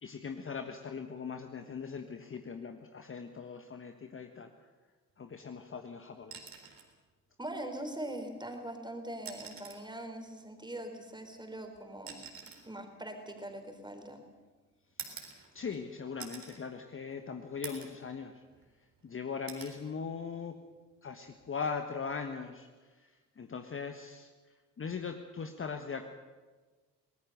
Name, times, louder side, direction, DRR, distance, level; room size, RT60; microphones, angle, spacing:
voice 1, 0.0-4.5 5.2-6.4 15.5-18.4 19.0-20.5 21.0-22.7 23.4-24.3 24.8-26.1, left 5 dB, 25° left, 6 dB, 1.4 m, -40 dB
sound 1, 6.2-6.9 8.4-8.5 9.1-9.9 11.1-14.2 15.0-15.8 16.2-16.6 17.1-17.2 17.6-18.0 18.4-19.1 19.5-19.8 21.3-21.5, right 6 dB, 45° right, 4.1 m, -47 dB
voice 2, 7.4-12.2 12.4-14.2, right 1 dB, 10° right, 5 dB, 4.1 m, -42 dB
23.0 x 19.5 x 6.7 m, 1.4 s
figure-of-eight pair, 50°, 47 cm